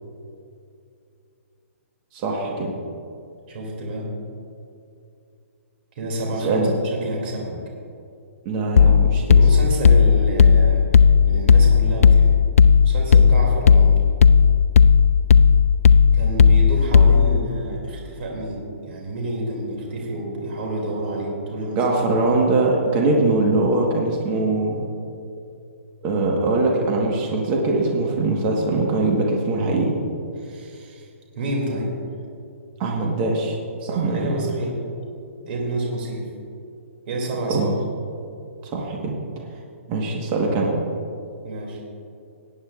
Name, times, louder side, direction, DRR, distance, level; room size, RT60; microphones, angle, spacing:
voice 1, 2.1-2.7 6.4-6.7 8.4-9.4 21.7-24.9 26.0-29.9 32.8-33.6 33.9-34.3 37.5-37.7 38.6-39.2 39.9-40.7, right 2 dB, 25° right, -1 dB, 1.3 m, -22 dB
voice 2, 3.5-4.1 6.0-7.5 9.3-10.8 11.2-12.3 12.8-14.0 16.1-21.8 30.4-31.1 31.4-31.9 33.8-34.9 35.5-36.2 37.1-37.7 41.4-41.8, right 1 dB, 45° right, -1 dB, 2.5 m, -29 dB
sound 1, 8.8-17.4, left 6 dB, 85° left, 0.3 m, -14 dB
18.5 x 9.7 x 2.4 m, 2.5 s
hypercardioid pair, 155°, 8 cm